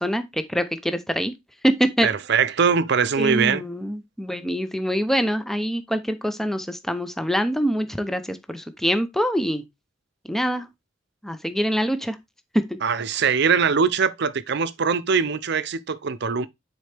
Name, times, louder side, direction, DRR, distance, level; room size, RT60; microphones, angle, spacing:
voice 1, 0.0-1.3 1.6-2.1 3.2-9.6 10.2-10.7 11.2-12.2 12.5-12.8, equal, ahead, 0.6 m, -24 dB
voice 2, 2.0-3.6 12.8-16.5, right 6 dB, 60° right, 0.6 m, -22 dB
9.4 x 4.4 x 3.4 m
head